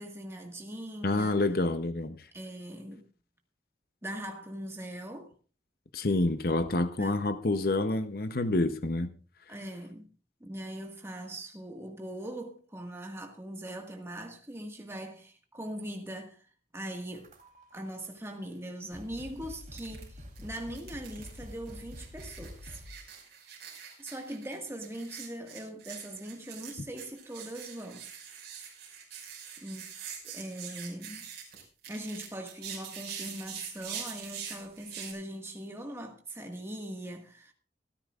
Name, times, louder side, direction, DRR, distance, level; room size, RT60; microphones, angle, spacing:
voice 1, 0.0-1.4 2.3-3.0 4.0-5.3 7.0-7.2 9.5-10.1 10.4-16.5 16.7-17.3 17.7-22.8 24.0-28.1 29.6-30.0 30.2-31.3 31.9-37.5, right 1 dB, 15° right, 1.7 m, -41 dB
voice 2, 1.0-2.2 5.9-9.1, left 2 dB, 55° left, 0.8 m, -28 dB
sound 1, 17.1-17.8 18.5-18.6 18.9-23.1, left 1 dB, 45° right, 3.3 m, -47 dB
sound 2, 19.8-20.0 20.4-35.1, right 7 dB, 65° right, 5.6 m, -44 dB
26.5 x 10.0 x 2.4 m
head